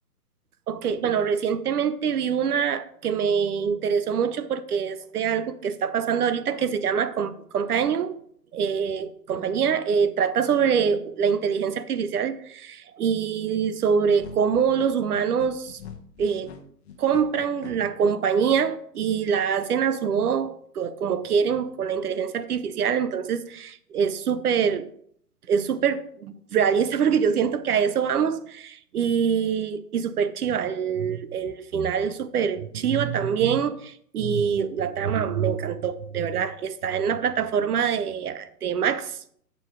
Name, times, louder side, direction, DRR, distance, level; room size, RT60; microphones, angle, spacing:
voice 1, 0.7-8.1 8.5-15.8 16.2-16.5 17.0-24.9 25.5-39.3, right 7 dB, 65° right, 0.8 m, -25 dB
sound 1, 14.2-17.7, left 6 dB, 40° left, 1.1 m, -43 dB
8.0 x 4.3 x 4.8 m
hypercardioid pair, 135°, 47 cm